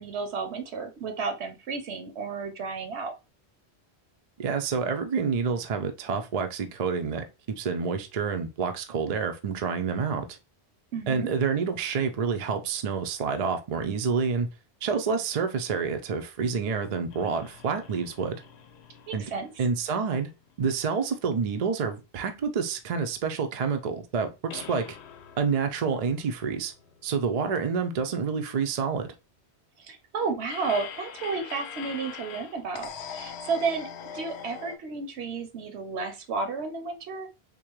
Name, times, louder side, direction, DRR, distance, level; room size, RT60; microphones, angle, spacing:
voice 1, 0.0-3.1 10.9-11.3 19.1-19.5 29.8-33.9 34.1-37.3, right 4 dB, 80° right, 1.0 m, -32 dB
voice 2, 4.4-10.4 11.1-14.5 14.8-18.4 19.1-19.2 19.6-20.3 20.6-25.0 25.4-26.7 27.0-29.1, right 5 dB, 50° right, 0.5 m, -28 dB
sound 1, 17.1-20.6 20.9-21.0 24.5-27.6 30.5-34.8, left 7 dB, 80° left, 0.8 m, -43 dB
3.7 x 2.7 x 3.0 m
omnidirectional pair, 1.1 m